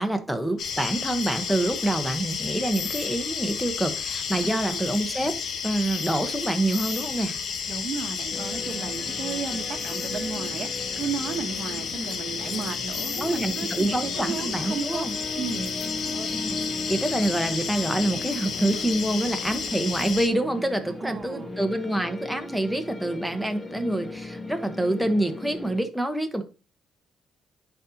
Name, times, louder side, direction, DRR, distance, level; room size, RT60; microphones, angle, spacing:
voice 1, 0.0-5.4 5.6-7.4 13.2-15.1 16.1-16.6 16.9-26.4, right 1 dB, ahead, 6 dB, 1.2 m, -26 dB
sound 1, 0.6-20.3, left 6 dB, 65° left, 1.0 m, -32 dB
voice 2, 4.4-4.8 7.7-15.0 15.3-15.7 21.0-21.5, right 6 dB, 55° right, 6 dB, 1.0 m, -34 dB
sound 2, 8.3-25.8, left 2 dB, 30° left, 0.9 m, -37 dB
10.0 x 4.2 x 2.9 m, 0.32 s
cardioid pair, 90°, 0 cm